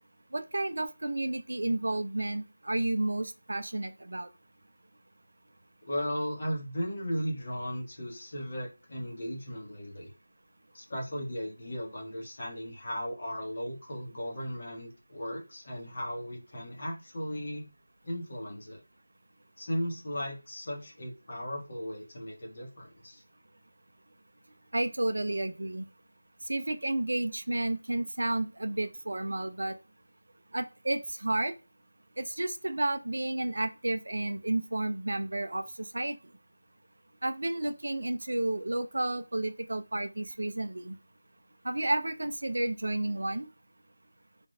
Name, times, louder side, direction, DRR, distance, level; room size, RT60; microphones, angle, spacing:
voice 1, 0.3-4.3 24.7-25.9 26.4-29.8 30.5-31.5 32.2-36.2 37.2-41.0 41.6-43.5, right 2 dB, 60° right, 0.6 m, -31 dB
voice 2, 5.8-10.1 10.7-17.7 18.0-18.8 19.6-23.2, equal, 40° left, 1.5 m, -36 dB
3.7 x 3.4 x 2.7 m
figure-of-eight pair, 165°, 0 cm